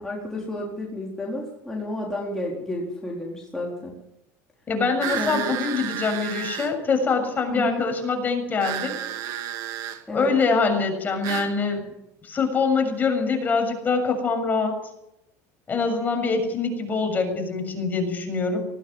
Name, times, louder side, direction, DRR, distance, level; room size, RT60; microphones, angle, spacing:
voice 1, 0.0-3.9 5.1-5.5 7.5-7.8 10.1-10.3, left 1 dB, 5° left, -4 dB, 4.2 m, -31 dB
voice 2, 4.7-8.9 10.1-11.9 12.2-14.8 15.7-18.6, left 4 dB, 25° left, 4 dB, 7.0 m, -24 dB
sound 1, 5.0-6.7 8.6-10.0 11.2-11.5, right 11 dB, 60° right, 2.6 m, -31 dB
19.5 x 18.5 x 8.0 m, 0.83 s
supercardioid pair, 135°, 7 cm